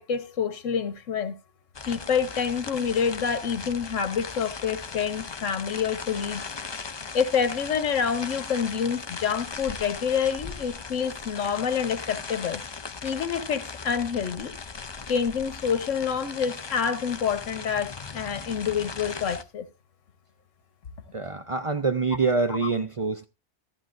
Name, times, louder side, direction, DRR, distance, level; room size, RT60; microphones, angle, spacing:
voice 1, 0.0-1.3 1.9-6.4 7.1-12.6 13.0-14.5 15.1-19.6 22.5-22.7, left 7 dB, 80° left, 1.4 m, -27 dB
sound 1, 1.7-19.4, left 5 dB, 35° left, 0.4 m, -38 dB
voice 2, 21.1-23.3, right 4 dB, 40° right, 0.5 m, -25 dB
14.0 x 12.5 x 2.5 m
omnidirectional pair, 1.3 m